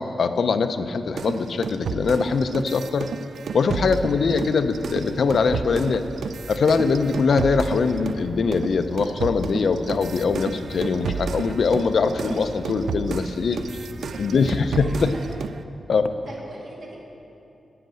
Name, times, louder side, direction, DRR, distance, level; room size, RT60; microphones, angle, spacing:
voice 1, 0.0-3.1 3.5-6.1 6.5-13.6 14.2-15.1 15.9-16.1, left 4 dB, 55° left, 9 dB, 0.5 m, -22 dB
sound 1, 1.2-8.2 8.5-15.6, right 6 dB, 75° right, 0.3 m, -32 dB
sound 2, 4.0-15.2, right 1 dB, 25° right, 0.8 m, -41 dB
voice 2, 14.7-15.3 16.2-17.0, right 2 dB, 55° right, -4 dB, 2.2 m, -42 dB
9.1 x 7.9 x 7.5 m, 2.8 s
wide cardioid pair, 175°, 0 cm